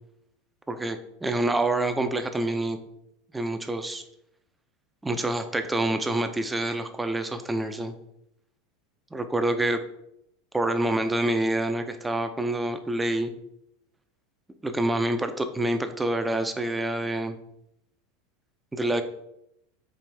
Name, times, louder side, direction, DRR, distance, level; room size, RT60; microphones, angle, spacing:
voice 1, 0.7-2.8 3.3-4.0 5.0-7.9 9.1-9.8 10.5-13.3 14.6-17.3 18.7-19.0, right 1 dB, 10° right, 8 dB, 0.4 m, -27 dB
4.7 x 2.5 x 3.3 m, 0.79 s
hypercardioid pair, 95°, 0 cm